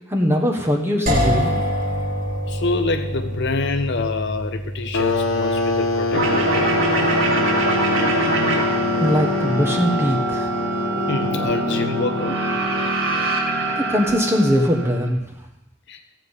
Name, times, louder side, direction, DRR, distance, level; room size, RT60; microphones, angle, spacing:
voice 1, 0.1-1.6 9.0-10.5 13.8-15.2, equal, 10° right, 2 dB, 1.1 m, -20 dB
sound 1, 1.1-10.8, equal, 40° right, 2.0 m, -28 dB
voice 2, 2.5-7.1 11.1-12.4 15.9-16.0, left 3 dB, 55° left, 7 dB, 0.5 m, -27 dB
sound 2, 4.9-13.3, left 3 dB, 75° left, 1.3 m, -25 dB
sound 3, 6.1-15.1, right 2 dB, 65° right, 2.3 m, -23 dB
14.5 x 8.1 x 5.6 m, 0.93 s
head